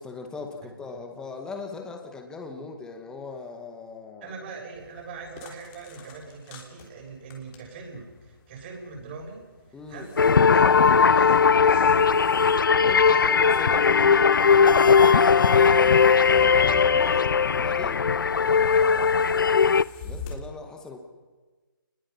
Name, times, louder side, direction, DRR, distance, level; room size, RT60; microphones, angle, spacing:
voice 1, 0.0-4.3 9.7-10.1 12.7-18.0 20.0-21.0, left 4 dB, 5° left, 3 dB, 2.1 m, -40 dB
voice 2, 4.2-12.0 18.7-19.5, right 4 dB, 30° right, 0 dB, 7.1 m, -42 dB
sound 1, 4.7-20.3, left 5 dB, 20° left, 3.5 m, -47 dB
sound 2, 10.2-19.8, left 6 dB, 65° left, 0.7 m, -18 dB
28.5 x 21.0 x 5.7 m, 1.3 s
figure-of-eight pair, 155°, 12 cm